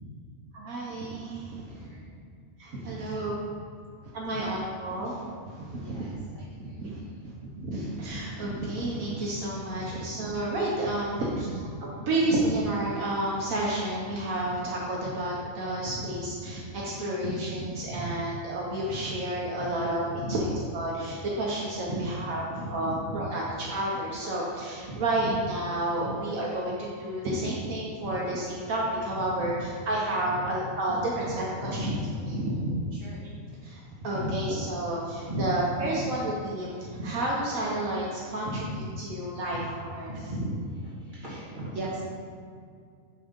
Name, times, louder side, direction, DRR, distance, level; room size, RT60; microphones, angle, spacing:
voice 1, 0.5-1.9 2.6-3.4 4.0-6.1 6.6-11.5 12.1-29.5 29.9-31.9 33.6-38.6 39.0-40.1, right 1 dB, 75° right, -4 dB, 1.5 m, -31 dB
voice 2, 1.6-2.1 3.1-3.6 4.3-4.4 4.9-5.1 5.8-6.2 6.6-7.3 9.7-9.9 11.1-11.6 12.2-12.4 15.0-15.1 15.8-16.0 16.9-18.2 18.9-19.0 19.6-19.9 20.1-20.4 21.8-22.2 22.5-23.2 23.5-23.7 24.9-25.3 26.0-26.1 27.4-27.5 28.0-28.1 29.5-29.6 30.3-30.5 30.9-31.3 31.6-33.3 34.1-34.5 35.3-36.1 36.9-37.1 38.4-39.1 39.5-39.6 40.1-42.0, right 1 dB, 35° right, -7 dB, 2.5 m, -36 dB
10.5 x 3.8 x 5.3 m, 2.1 s
omnidirectional pair, 1.4 m